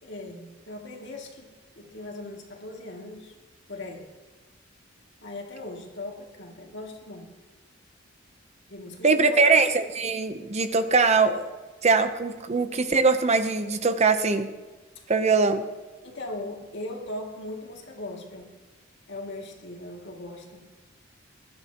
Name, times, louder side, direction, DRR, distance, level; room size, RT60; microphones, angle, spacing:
voice 1, 0.0-1.5 1.8-3.3 3.7-4.1 5.2-7.3 8.7-9.5 15.0-15.1 16.0-18.5 19.1-20.6, left 2 dB, 65° left, 0 dB, 2.4 m, -39 dB
voice 2, 9.0-11.5 11.8-14.5 15.1-15.6, right 4 dB, 35° right, 9 dB, 0.7 m, -22 dB
21.0 x 12.5 x 2.9 m, 1.3 s
head